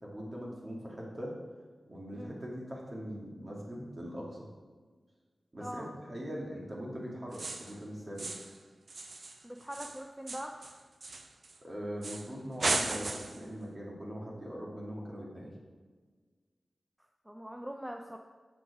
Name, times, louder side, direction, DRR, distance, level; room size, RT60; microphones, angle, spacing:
voice 1, 0.0-1.3 1.9-4.5 5.5-8.3 11.6-15.5, equal, 40° right, -3 dB, 2.4 m, -41 dB
voice 2, 5.6-5.9 9.4-10.6 17.3-18.2, equal, 10° right, 3 dB, 0.5 m, -42 dB
sound 1, 7.3-7.8 8.2-8.6 8.9-11.6 12.0-12.3 12.6-13.5, right 3 dB, 70° right, 0.6 m, -36 dB
7.8 x 5.9 x 4.9 m, 1.5 s
cardioid pair, 55°, 0 cm